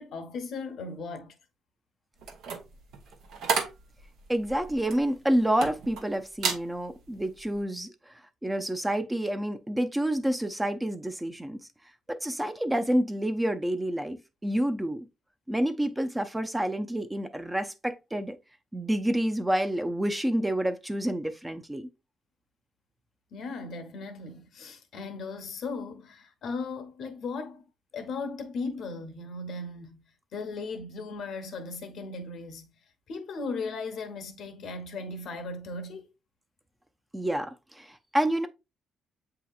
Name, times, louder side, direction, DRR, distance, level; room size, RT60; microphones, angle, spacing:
voice 1, 0.0-1.3 23.3-27.6 27.9-30.0 30.3-32.7 33.1-36.1, left 3 dB, 70° left, 0.8 m, -37 dB
sound 1, 2.2-6.0 6.3-6.7 7.1-7.4, right 5 dB, 80° right, 0.9 m, -32 dB
voice 2, 4.3-7.9 8.4-11.6 12.1-15.1 15.5-18.4 18.7-21.9 37.1-38.5, right 1 dB, 10° right, 0.5 m, -28 dB
7.4 x 2.8 x 2.3 m
cardioid pair, 90°, 0 cm